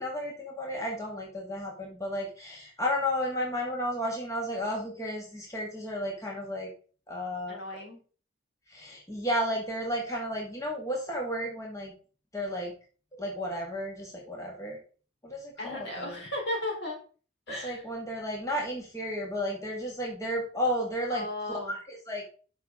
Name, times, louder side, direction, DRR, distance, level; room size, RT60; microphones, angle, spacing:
voice 1, 0.0-6.7 7.1-7.6 8.7-11.9 12.3-12.7 13.1-14.8 15.2-16.2 17.5-22.2, equal, 15° left, -1 dB, 2.0 m, -33 dB
voice 2, 7.5-8.0 15.6-17.0 17.5-17.8 21.1-21.8, left 1 dB, 60° left, 0 dB, 3.9 m, -35 dB
11.5 x 5.9 x 3.8 m, 0.39 s
head